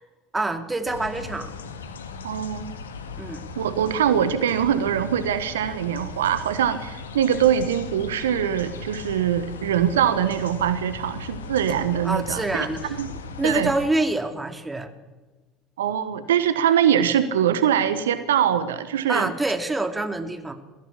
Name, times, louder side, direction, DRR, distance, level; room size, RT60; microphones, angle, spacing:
voice 1, 0.3-1.5 3.2-3.5 12.0-13.0 13.4-14.9 19.1-20.5, right 2 dB, 15° right, 7 dB, 2.9 m, -26 dB
sound 1, 0.8-13.9, left 4 dB, 80° left, 1.8 m, -38 dB
voice 2, 2.2-2.7 3.6-12.7 13.0-13.1 13.4-13.7 15.8-19.3, right 9 dB, 75° right, 12 dB, 1.2 m, -23 dB
22.5 x 15.5 x 8.5 m, 1.2 s
figure-of-eight pair, 65°, 0 cm